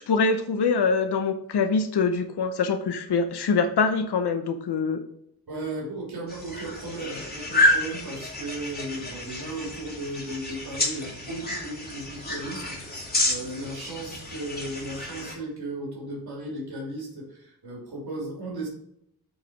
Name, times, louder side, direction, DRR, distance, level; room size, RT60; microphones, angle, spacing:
voice 1, 0.0-5.0, left 4 dB, 85° left, 8 dB, 0.9 m, -24 dB
voice 2, 5.5-18.7, right 1 dB, 75° right, -3 dB, 3.4 m, -36 dB
sound 1, 6.3-15.3, left 1 dB, 25° left, 2.7 m, -29 dB
8.3 x 5.0 x 5.2 m, 0.76 s
wide cardioid pair, 130°, 39 cm